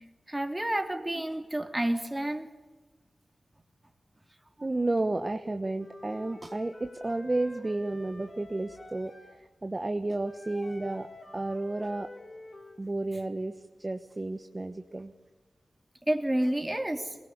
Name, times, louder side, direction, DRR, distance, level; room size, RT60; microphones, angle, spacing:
voice 1, 0.3-2.5 16.1-17.1, right 1 dB, 15° right, 4 dB, 3.2 m, -29 dB
voice 2, 4.6-9.1 9.6-11.1 11.3-12.1 12.8-13.5 13.8-15.1, right 2 dB, 30° right, 7 dB, 1.2 m, -31 dB
Wind instrument woodwind instrument, 5.8-9.4 10.2-12.8, left 2 dB, 45° left, 4.6 m, -48 dB
22.5 x 21.0 x 8.1 m, 1.3 s
cardioid pair, 60°, 0 cm